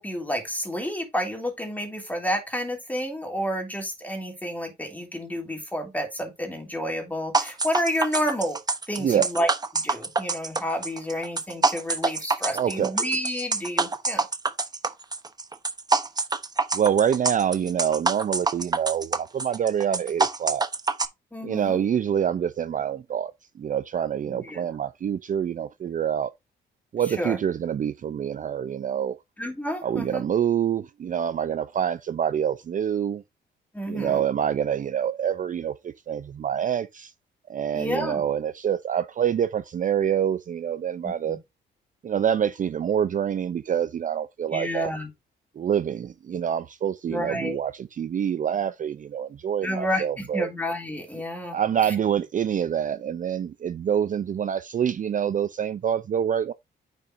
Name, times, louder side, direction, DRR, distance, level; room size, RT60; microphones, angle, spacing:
voice 1, 0.0-8.6 8.9-14.3 21.3-21.8 24.3-24.7 27.2-27.4 29.4-30.2 33.7-34.2 37.7-38.2 41.0-41.4 44.5-45.1 47.1-47.6 49.6-51.9, equal, 10° left, 2.9 m, -30 dB
sound 1, 7.3-21.1, right 3 dB, 20° right, 0.8 m, -26 dB
voice 2, 9.0-9.3 12.5-13.0 16.7-20.6 21.4-23.3 23.6-26.3 26.9-29.2 29.8-33.2 33.9-37.1 37.5-41.4 42.0-44.9 45.6-50.5 51.5-56.5, right 9 dB, 40° right, 0.5 m, -26 dB
8.9 x 5.7 x 2.6 m
cardioid pair, 90°, 20 cm